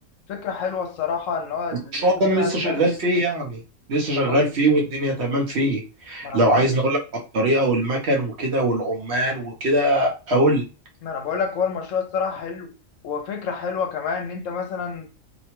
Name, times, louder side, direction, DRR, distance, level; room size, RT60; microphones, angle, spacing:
voice 1, 0.3-2.8 4.2-4.4 6.2-6.8 11.0-12.7 13.0-15.1, left 6 dB, 75° left, 1.0 m, -28 dB
voice 2, 1.9-3.6 3.9-7.0 7.3-10.6, right 1 dB, 60° right, 0.9 m, -21 dB
2.9 x 2.2 x 2.9 m
omnidirectional pair, 1.4 m